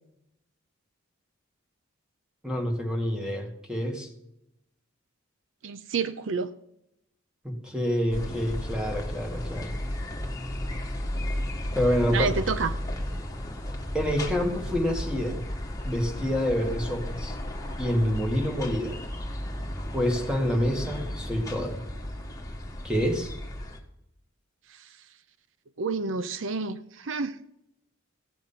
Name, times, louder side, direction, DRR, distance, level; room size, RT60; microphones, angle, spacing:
voice 1, 2.4-4.1 7.4-9.7 11.8-12.3 13.9-15.4 15.8-17.4 17.8-19.0 19.9-21.8 22.8-23.3, equal, 5° right, 2 dB, 1.9 m, -27 dB
voice 2, 5.6-6.5 12.1-12.7 24.7-24.9 25.8-27.4, right 4 dB, 60° right, 13 dB, 0.5 m, -29 dB
sound 1, 8.1-23.8, left 1 dB, 15° left, 1.5 m, -34 dB
16.0 x 7.9 x 5.7 m, 0.84 s
head